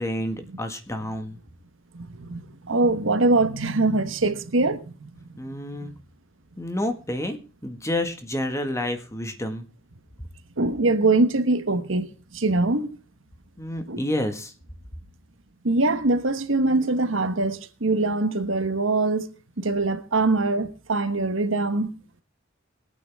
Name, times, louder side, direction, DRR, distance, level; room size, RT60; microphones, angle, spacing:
voice 1, 0.0-1.4 5.4-5.9 6.6-9.7 13.6-14.5, left 1 dB, 15° left, 1.7 m, -29 dB
voice 2, 1.9-5.1 10.6-12.9 13.9-14.0 15.6-19.3 19.6-21.9, right 2 dB, 70° right, 1.3 m, -23 dB
21.5 x 9.2 x 3.6 m
head